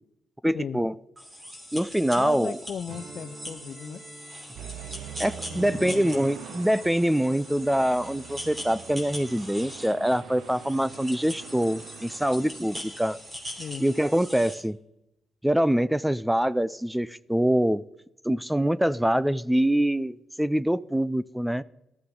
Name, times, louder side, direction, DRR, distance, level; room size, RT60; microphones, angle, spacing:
voice 1, 0.4-0.9 1.7-2.6 5.2-13.2 13.8-14.8 15.4-17.8 18.2-21.6, equal, 5° right, 18 dB, 0.4 m, -24 dB
sound 1, 1.2-14.6, equal, 20° right, 4.0 m, -41 dB
voice 2, 2.2-4.0 5.5-6.1 13.6-13.8, left 7 dB, 55° left, 6 dB, 0.6 m, -36 dB
Strum, 2.8-7.5, right 2 dB, 55° right, 6.4 m, -50 dB
sound 2, 4.5-12.6, right 10 dB, 80° right, 0.5 m, -44 dB
18.5 x 13.0 x 3.9 m, 0.88 s
cardioid pair, 90°, 0 cm